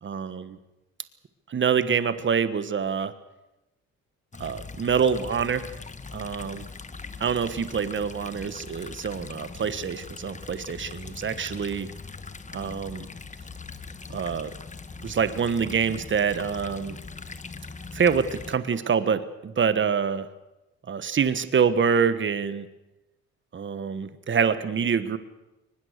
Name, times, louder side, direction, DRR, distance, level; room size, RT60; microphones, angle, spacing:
voice 1, 0.0-0.6 1.5-3.1 4.4-5.7 6.1-6.7 7.2-11.9 12.5-13.1 14.1-14.5 15.0-17.0 17.9-20.3 20.9-22.7 23.5-25.2, right 6 dB, 40° right, 12 dB, 1.4 m, -26 dB
sound 1, 4.3-18.6, left 4 dB, 25° left, 1.3 m, -41 dB
23.0 x 20.5 x 6.7 m, 0.97 s
cardioid pair, 90°, 30 cm